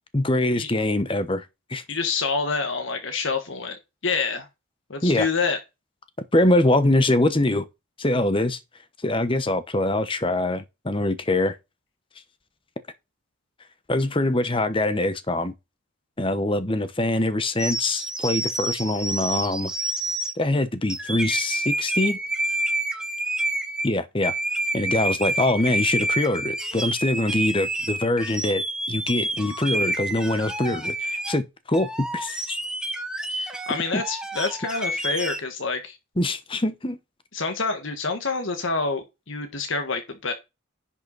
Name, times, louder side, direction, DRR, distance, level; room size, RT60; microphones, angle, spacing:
voice 1, 0.1-1.4 1.7-1.8 5.0-5.3 6.3-7.6 8.0-8.6 9.0-11.5 13.9-15.5 16.2-19.7 20.4-22.2 23.8-24.3 24.7-28.6 28.9-32.6 33.9-34.0 36.2-37.0, left 1 dB, 25° left, 1.0 m, -23 dB
voice 2, 1.9-3.8 4.0-4.5 4.9-5.6 33.3-36.0 37.3-40.3, left 4 dB, 70° left, 1.6 m, -27 dB
sound 1, 17.6-20.3 20.9-23.9 24.2-31.4 31.7-35.4, right 2 dB, 5° right, 1.1 m, -28 dB
10.5 x 5.9 x 4.1 m
head